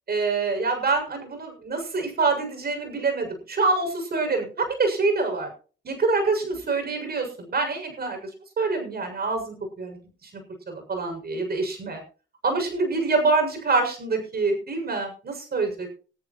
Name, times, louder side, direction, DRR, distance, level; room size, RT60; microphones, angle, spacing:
voice 1, 0.1-5.5 5.8-8.2 8.6-10.3 10.7-12.0 12.4-15.9, right 3 dB, 55° right, 5 dB, 7.0 m, -26 dB
21.0 x 13.5 x 3.1 m, 0.40 s
cardioid pair, 80°, 20 cm